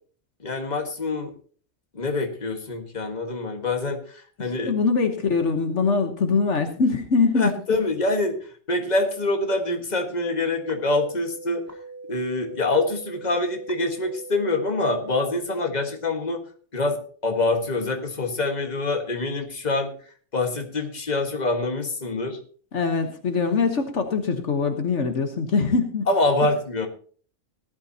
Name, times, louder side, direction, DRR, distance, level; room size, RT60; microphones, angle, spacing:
voice 1, 0.4-1.3 1.9-4.7 7.3-11.6 12.1-16.4 16.7-19.9 20.3-22.4 26.1-26.9, left 2 dB, 35° left, 4 dB, 1.8 m, -25 dB
voice 2, 4.4-7.5 22.7-26.1, left 4 dB, 70° left, 6 dB, 1.5 m, -23 dB
sound 1, 10.5-15.4, right 3 dB, 15° right, 1.7 m, -41 dB
18.0 x 12.0 x 2.9 m, 0.43 s
omnidirectional pair, 1.2 m